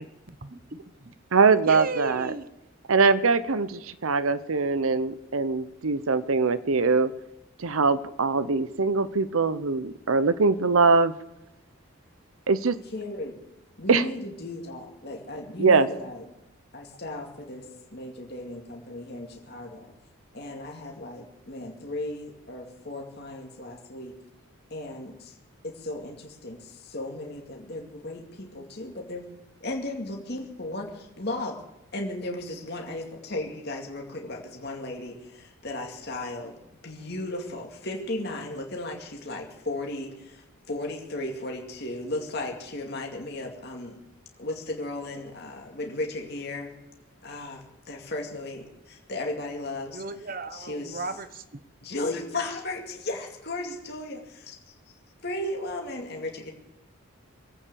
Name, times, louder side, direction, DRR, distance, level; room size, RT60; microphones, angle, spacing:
voice 1, 0.0-1.1 1.6-2.5 49.9-51.6, right 3 dB, 40° right, 12 dB, 0.9 m, -36 dB
voice 2, 1.3-2.3 2.9-7.1 7.6-11.1 12.5-12.8 13.9-14.1 15.6-15.9, right 4 dB, 75° right, 14 dB, 0.7 m, -22 dB
voice 3, 12.9-13.4 13.8-16.3 16.7-19.9 20.3-24.2 24.7-25.3 25.6-29.2 29.6-31.6 31.9-36.5 36.8-44.0 44.4-46.7 47.2-50.0 50.5-51.0 51.8-55.0 55.2-56.5, left 2 dB, 50° left, 1 dB, 2.3 m, -35 dB
22.5 x 8.9 x 6.9 m, 0.91 s
head